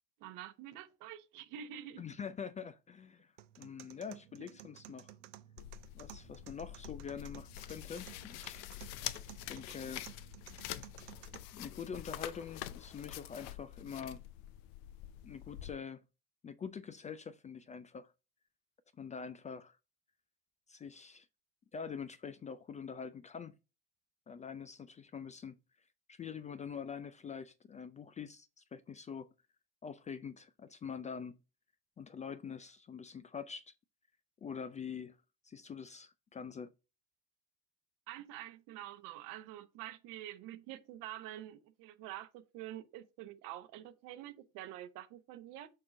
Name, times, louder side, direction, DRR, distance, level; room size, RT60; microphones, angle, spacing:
voice 1, 0.2-2.1 4.4-4.5 38.1-45.7, right 12 dB, 65° right, 1.0 m, -47 dB
voice 2, 2.0-3.3 3.6-5.1 5.9-8.6 9.5-10.1 11.5-14.2 15.2-16.0 16.4-18.1 19.0-19.8 20.7-21.3 21.7-23.6 24.3-25.5 26.1-29.3 29.8-31.4 32.0-33.7 34.4-35.2 35.4-36.7, left 6 dB, 20° left, 0.4 m, -45 dB
sound 1, 3.4-11.4, right 14 dB, 80° right, 0.6 m, -55 dB
sound 2, 5.6-15.7, left 13 dB, 65° left, 0.6 m, -46 dB
6.5 x 2.9 x 5.0 m
hypercardioid pair, 85°, 36 cm